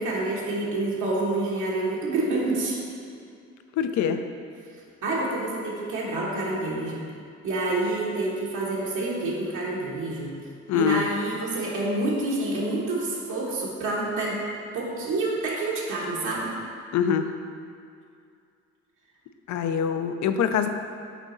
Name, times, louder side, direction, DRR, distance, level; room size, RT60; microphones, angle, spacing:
voice 1, 0.0-2.8 5.0-7.1 7.4-10.3 10.7-14.4 14.7-16.5, right 2 dB, 80° right, -5 dB, 1.2 m, -28 dB
voice 2, 3.8-4.2 10.7-11.0 16.9-17.3 19.5-20.7, left 7 dB, 70° left, 8 dB, 0.5 m, -24 dB
6.1 x 4.0 x 3.9 m, 2.3 s
cardioid pair, 90°, 30 cm